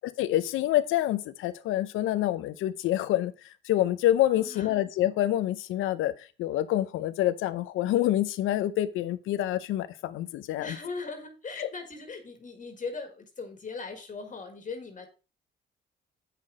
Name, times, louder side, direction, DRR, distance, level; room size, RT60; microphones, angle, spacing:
voice 1, 0.2-3.3 3.6-10.8 11.6-11.7, left 13 dB, 90° left, 11 dB, 0.6 m, -27 dB
voice 2, 4.3-4.7 10.6-15.1, left 4 dB, 40° left, 5 dB, 1.8 m, -39 dB
8.3 x 5.8 x 4.9 m, 0.33 s
cardioid pair, 90°, 20 cm